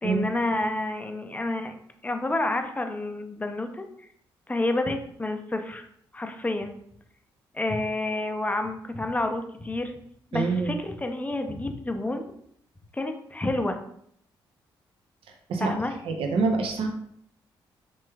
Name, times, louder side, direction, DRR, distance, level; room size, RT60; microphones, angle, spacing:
voice 1, 0.0-1.8 2.0-4.1 4.5-5.9 6.1-6.7 7.5-9.9 10.3-12.3 12.9-13.8 15.6-15.9, left 2 dB, 15° left, 5 dB, 0.5 m, -29 dB
voice 2, 10.3-10.8 15.5-15.7 16.0-16.9, right 4 dB, 65° right, 3 dB, 0.5 m, -25 dB
3.1 x 3.1 x 2.3 m, 0.68 s
hypercardioid pair, 50°, 10 cm